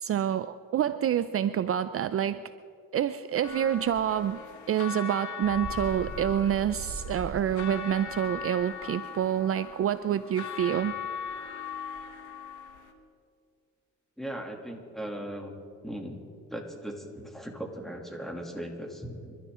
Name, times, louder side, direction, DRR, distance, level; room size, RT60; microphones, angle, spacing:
voice 1, 0.0-2.4 2.9-4.4 4.7-10.9, right 10 dB, 50° right, 13 dB, 0.5 m, -27 dB
sound 1, 3.4-12.9, left 7 dB, 75° left, 1.7 m, -40 dB
Bird, 5.4-7.9, right 3 dB, 70° right, 2.6 m, -40 dB
voice 2, 14.2-15.6 15.8-16.2 16.5-19.4, equal, ahead, 1 dB, 2.8 m, -38 dB
27.5 x 13.0 x 3.8 m, 2.3 s
cardioid pair, 90°, 30 cm